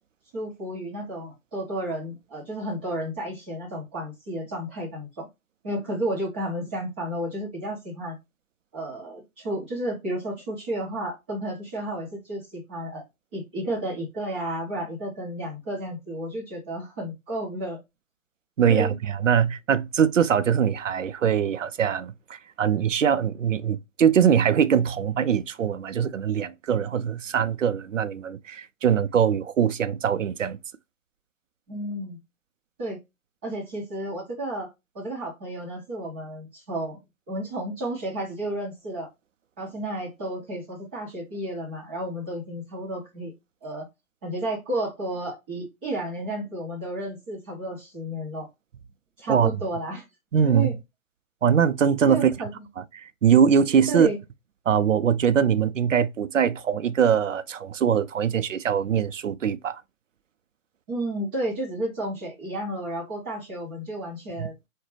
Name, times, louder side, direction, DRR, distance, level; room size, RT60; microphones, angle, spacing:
voice 1, 0.3-5.3 5.6-8.1 8.7-13.0 13.3-17.8 18.7-19.0 31.7-32.2 32.8-33.0 33.4-34.7 34.9-37.0 37.3-39.1 39.6-43.3 43.6-43.9 44.2-48.5 49.2-50.0 50.4-50.7 52.1-52.5 53.9-54.2 60.9-64.7, right 1 dB, 10° right, 0.7 m, -32 dB
voice 2, 18.6-30.6 49.3-49.5 50.3-50.7 51.4-52.3 52.9-54.1 54.7-59.8 64.4-64.5, right 8 dB, 60° right, 0.5 m, -22 dB
4.9 x 2.1 x 3.2 m
figure-of-eight pair, 145°, 43 cm